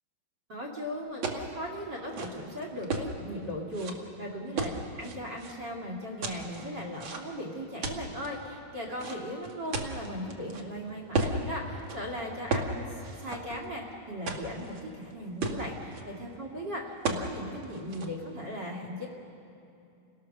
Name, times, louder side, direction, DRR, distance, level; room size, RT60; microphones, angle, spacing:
voice 1, 0.5-19.1, equal, 35° right, 1 dB, 2.3 m, -38 dB
sound 1, 1.2-1.5 2.0-3.1 3.7-3.9 4.6-5.5 6.2-7.4 7.8-8.3 9.0-10.6 11.1-11.4 11.8-12.0 12.5-12.7 13.0-13.8 14.3-14.8 15.1-15.2 15.4-16.0 17.0-17.3 17.6-18.1, right 3 dB, 55° right, 1.3 m, -33 dB
30.0 x 17.5 x 6.6 m, 2.7 s
omnidirectional pair, 4.5 m